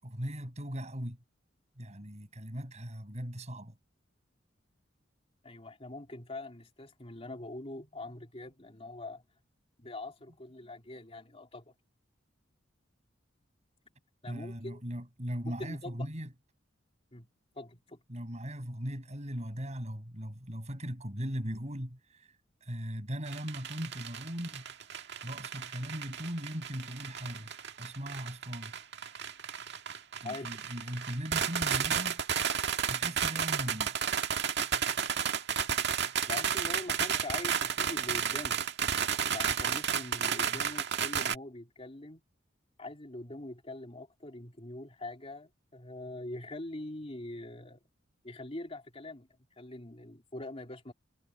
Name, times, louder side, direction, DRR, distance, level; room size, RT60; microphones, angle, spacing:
voice 1, 0.0-1.2 1.8-3.8 14.3-16.3 18.1-22.3 22.6-24.6 25.2-28.7 30.2-32.2 32.9-33.9, equal, 35° right, 6.8 m, -39 dB
voice 2, 5.4-9.2 9.8-11.7 14.2-14.8 15.5-16.1 17.1-17.3 17.5-18.0 30.2-30.5 36.3-38.6 39.3-42.2 42.8-47.8 48.2-49.3 49.6-50.9, left 2 dB, 30° left, 3.0 m, -43 dB
sound 1, 23.3-41.3, right 8 dB, 60° right, 1.9 m, -32 dB
head